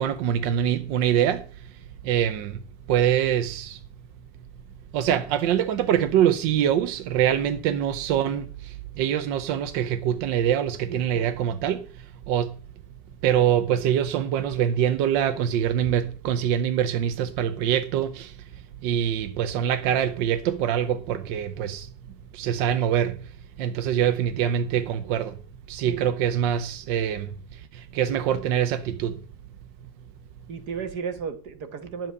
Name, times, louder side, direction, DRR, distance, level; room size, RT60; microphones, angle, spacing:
voice 1, 0.0-2.6 2.9-3.8 4.9-12.5 13.2-18.5 18.8-21.9 22.3-23.3 23.6-25.4 25.7-29.2, right 9 dB, 75° right, 1.4 m, -24 dB
voice 2, 10.9-11.3 25.8-26.0 30.5-32.1, right 6 dB, 60° right, 1.7 m, -34 dB
11.0 x 7.8 x 6.6 m
omnidirectional pair, 2.1 m